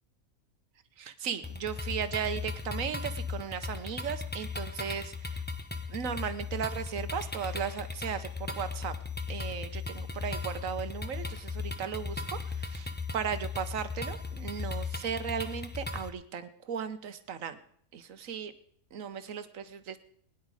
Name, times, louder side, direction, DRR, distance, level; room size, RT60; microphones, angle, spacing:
voice 1, 1.0-5.4 5.9-8.9 9.3-17.6 17.9-18.5 18.9-20.0, right 7 dB, 70° right, 11 dB, 1.3 m, -36 dB
sound 1, 1.4-16.1, left 4 dB, 10° left, 0.7 m, -37 dB
20.0 x 10.5 x 4.9 m, 0.65 s
omnidirectional pair, 1.4 m